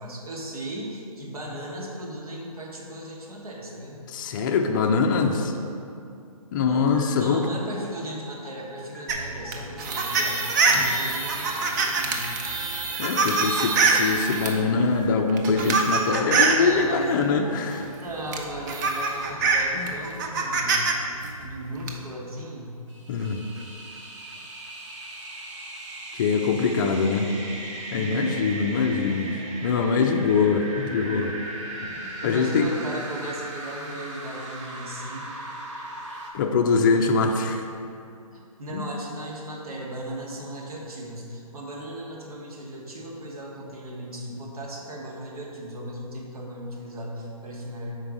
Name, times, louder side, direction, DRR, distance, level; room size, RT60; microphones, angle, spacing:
voice 1, 0.0-4.0 6.7-12.3 16.5-17.3 17.9-20.8 21.4-22.8 28.0-28.4 32.2-35.3 38.3-48.0, right 1 dB, 75° right, -2 dB, 1.5 m, -37 dB
voice 2, 4.1-5.5 6.5-7.5 10.7-10.9 13.0-17.9 19.7-19.9 23.1-23.4 26.1-27.3 27.9-29.3 29.6-31.3 31.8-32.0 32.2-32.7 36.3-37.6 38.7-38.9, left 4 dB, 35° left, 3 dB, 0.4 m, -23 dB
sound 1, 6.9-7.0 7.4-7.5 7.9-8.0 8.4-8.5 8.9-9.0 9.4-9.5 9.9-10.0 10.4-10.5 10.9-11.0 11.4-11.5 11.9-12.0 12.4-12.5 12.9-13.0 13.4-13.5 13.9-14.0 14.4-14.5 14.9-15.0 15.4-15.5 15.9-16.0 16.4-16.5 16.9-17.0 17.4-17.5, left 3 dB, 5° left, 0.9 m, -44 dB
sound 2, 9.1-14.6 15.3-16.6 17.9-18.0 18.3-20.9 21.2-21.9, right 4 dB, 30° right, 0.6 m, -24 dB
sound 3, 22.9-36.3, right 2 dB, 50° right, 1.2 m, -38 dB
5.8 x 4.5 x 4.9 m, 2.6 s
hypercardioid pair, 140°, 19 cm